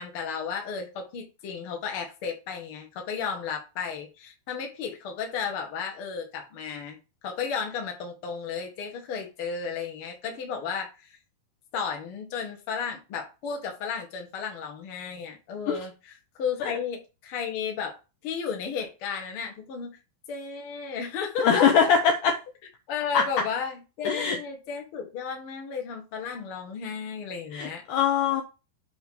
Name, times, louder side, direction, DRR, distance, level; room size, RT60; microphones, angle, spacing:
voice 1, 0.0-7.0 7.2-11.2 11.7-16.1 16.4-18.0 18.2-20.0 20.3-21.7 22.9-27.8, left 6 dB, 50° left, 1.8 m, -33 dB
voice 2, 21.4-22.4 23.1-23.2 24.0-24.4 27.5-28.4, left 7 dB, 75° left, 2.1 m, -22 dB
7.9 x 3.1 x 5.5 m
omnidirectional pair, 4.3 m